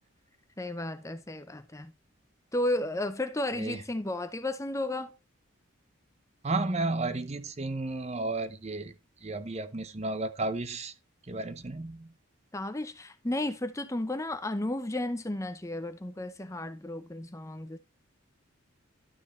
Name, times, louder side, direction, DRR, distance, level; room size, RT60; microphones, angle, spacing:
voice 1, 0.6-1.9 2.5-5.1 12.5-17.8, left 1 dB, 15° left, 0.6 m, -33 dB
voice 2, 6.4-8.9 9.2-10.9 11.3-12.1, right 2 dB, 30° right, 0.7 m, -33 dB
12.0 x 6.2 x 3.1 m
head